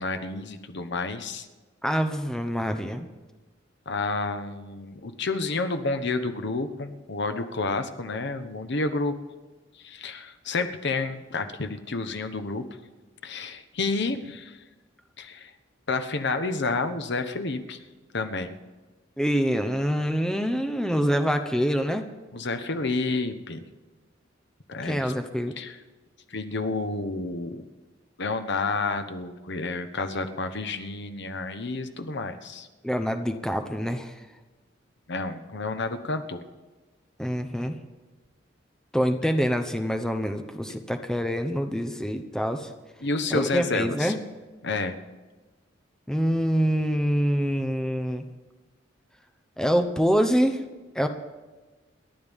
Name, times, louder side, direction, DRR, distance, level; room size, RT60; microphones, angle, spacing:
voice 1, 0.0-1.5 3.9-9.1 9.8-12.7 13.2-14.6 15.2-15.5 15.9-17.8 18.1-18.6 22.3-23.6 24.7-25.1 25.6-25.8 26.3-27.6 28.2-32.7 35.1-36.4 43.0-44.1 44.6-45.0, left 3 dB, 65° left, 8 dB, 1.1 m, -30 dB
voice 2, 1.8-3.1 19.2-22.0 24.8-25.5 32.8-34.1 37.2-37.8 38.9-42.7 43.3-44.2 46.1-48.2 49.6-50.6 50.9-51.1, equal, 5° left, 6 dB, 0.8 m, -25 dB
27.5 x 11.5 x 3.6 m, 1.2 s
head